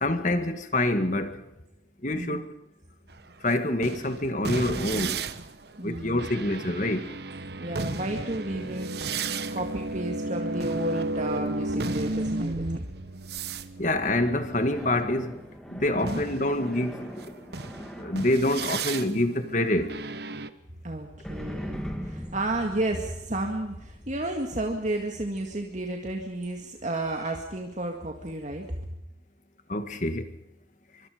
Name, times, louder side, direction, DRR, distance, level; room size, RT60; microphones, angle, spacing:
voice 1, 0.0-1.4 2.0-2.5 3.4-5.2 5.8-7.1 13.8-15.4 15.7-17.3 18.0-20.0 29.7-30.3, left 1 dB, 40° left, 9 dB, 2.0 m, -26 dB
sound 1, 3.1-15.3 16.0-20.5, right 3 dB, 60° right, 1.2 m, -34 dB
voice 2, 5.8-6.3 7.6-9.1 9.5-12.8 15.9-16.2 20.8-28.7, right 1 dB, 40° right, 2 dB, 2.1 m, -32 dB
sound 2, 13.8-19.8 21.2-26.6, equal, 5° left, 2.8 m, -41 dB
25.0 x 24.0 x 5.2 m, 0.89 s
head